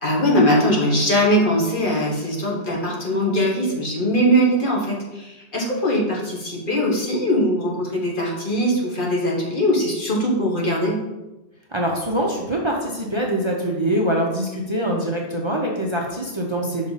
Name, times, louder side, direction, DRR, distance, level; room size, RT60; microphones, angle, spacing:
voice 1, 0.0-11.0, equal, 50° left, -3 dB, 1.6 m, -21 dB
voice 2, 11.7-16.9, right 1 dB, 30° right, -2 dB, 0.8 m, -24 dB
5.8 x 5.2 x 4.0 m, 1.0 s
omnidirectional pair, 1.1 m